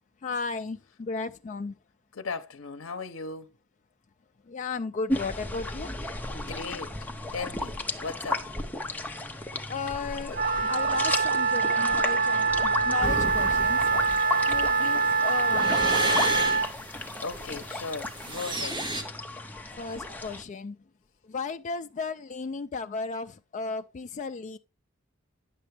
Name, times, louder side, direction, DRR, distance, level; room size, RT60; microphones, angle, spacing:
voice 1, 0.2-1.8 4.5-5.9 9.7-10.4 10.7-13.8 14.5-16.1 19.8-20.8 21.3-24.6, left 4 dB, 35° left, 0.3 m, -35 dB
voice 2, 2.1-3.5 6.3-8.4 17.2-18.8, left 4 dB, 70° left, 0.7 m, -37 dB
sound 1, 5.1-20.4, left 2 dB, 10° left, 0.7 m, -35 dB
Wind instrument woodwind instrument, 10.3-16.7, right 4 dB, 45° right, 0.6 m, -25 dB
sound 2, 13.0-19.0, right 1 dB, 20° right, 1.4 m, -32 dB
9.9 x 6.8 x 3.3 m
head